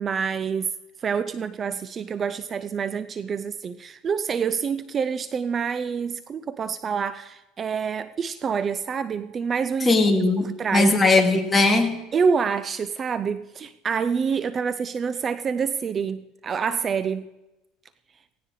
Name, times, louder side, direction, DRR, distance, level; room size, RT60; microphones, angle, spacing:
voice 1, 0.0-10.0 10.6-11.0 12.1-17.3, right 6 dB, 35° right, 0.6 m, -27 dB
voice 2, 9.8-12.0, left 3 dB, 15° left, 2.3 m, -19 dB
17.5 x 17.0 x 3.2 m
supercardioid pair, 105°, 0 cm